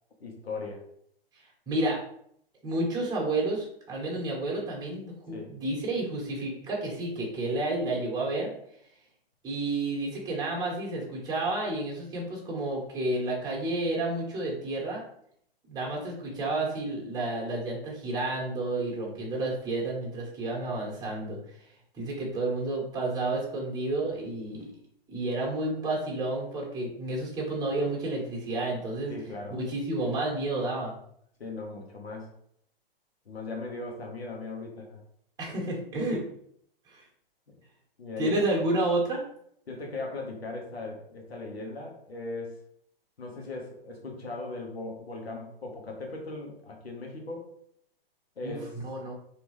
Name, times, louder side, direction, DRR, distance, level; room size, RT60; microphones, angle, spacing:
voice 1, 0.2-0.8 5.3-5.6 29.1-29.6 31.4-32.3 33.2-35.0 37.5-37.6 38.0-38.5 39.7-42.6 43.2-47.5 48.4-48.7, left 3 dB, 90° left, 0 dB, 1.3 m, -38 dB
voice 2, 1.7-2.0 2.6-8.5 9.4-15.0 15.7-21.4 22.0-24.7 25.1-29.1 29.5-30.9 35.4-36.2 36.9-37.0 38.2-39.2 48.4-49.1, right 2 dB, 15° right, -3 dB, 1.2 m, -30 dB
3.8 x 2.9 x 3.1 m, 0.68 s
hypercardioid pair, 125°, 30 cm